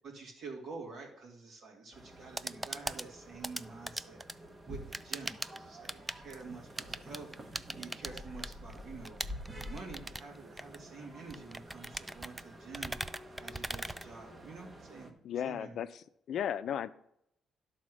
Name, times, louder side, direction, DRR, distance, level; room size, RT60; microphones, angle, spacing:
voice 1, 0.0-4.2 4.6-9.2 9.5-15.2 15.4-15.8, right 4 dB, 70° right, 2.4 m, -48 dB
sound 1, 1.9-15.1, equal, 30° right, 1.2 m, -49 dB
sound 2, 2.1-14.7, right 1 dB, 15° right, 0.4 m, -42 dB
voice 2, 15.2-16.9, left 9 dB, 70° left, 0.5 m, -35 dB
11.0 x 4.2 x 6.3 m
cardioid pair, 90°, 0 cm